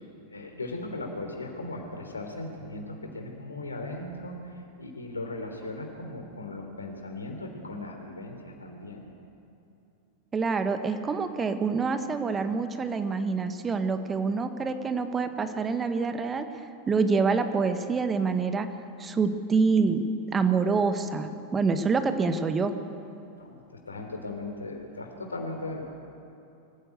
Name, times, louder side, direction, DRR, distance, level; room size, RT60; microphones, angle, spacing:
voice 1, 0.3-9.1 23.4-26.0, left 2 dB, 75° left, 3 dB, 3.3 m, -38 dB
voice 2, 10.3-16.5 16.9-18.7 19.0-20.1 20.3-22.7, right 4 dB, 20° right, 8 dB, 1.4 m, -26 dB
25.0 x 15.5 x 8.0 m, 2.7 s
figure-of-eight pair, 90°, 0 cm